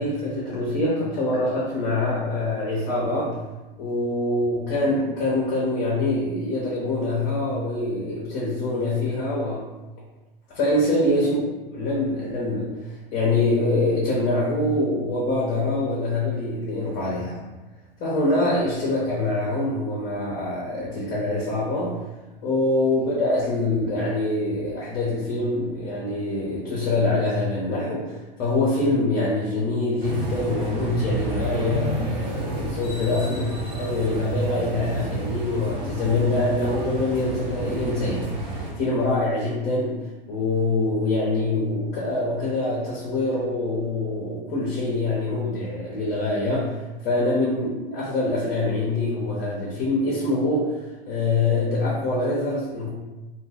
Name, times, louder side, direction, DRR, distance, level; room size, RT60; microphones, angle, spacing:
voice 1, 0.0-3.4 3.8-9.7 10.5-11.4 11.7-12.7 13.1-17.4 18.0-22.0 22.4-38.3 38.7-40.0 40.3-46.7 47.0-50.7 51.1-52.9, left 2 dB, 40° left, -5 dB, 0.8 m, -24 dB
sound 1, 30.0-38.7, right 2 dB, 45° right, 1.3 m, -30 dB
2.5 x 2.5 x 3.5 m, 1.1 s
figure-of-eight pair, 95°, 29 cm